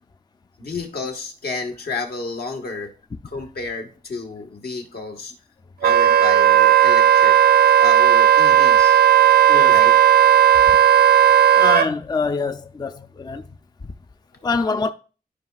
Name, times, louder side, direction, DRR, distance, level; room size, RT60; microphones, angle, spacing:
voice 1, 0.6-2.9 3.2-5.3 5.8-7.4 7.8-9.0 9.7-9.9, left 3 dB, 80° left, 1.5 m, -31 dB
Wind instrument woodwind instrument, 5.8-11.9, right 10 dB, 80° right, 0.5 m, -14 dB
voice 2, 9.5-9.8 11.6-13.5 14.4-14.9, left 4 dB, 25° left, 0.4 m, -25 dB
12.5 x 5.1 x 2.4 m
wide cardioid pair, 100°, 16 cm